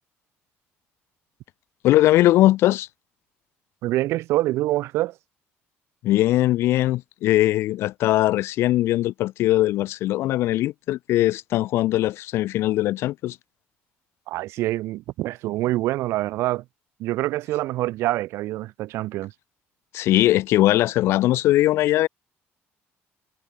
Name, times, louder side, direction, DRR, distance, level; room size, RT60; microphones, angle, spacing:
voice 1, 1.8-2.9 6.0-13.4 19.9-22.1, left 15 dB, 60° left, 1.6 m, -20 dB
voice 2, 3.8-5.1 14.3-16.6 17.0-19.3, right 16 dB, 65° right, 8.0 m, -25 dB
cardioid pair, 175°, 5 cm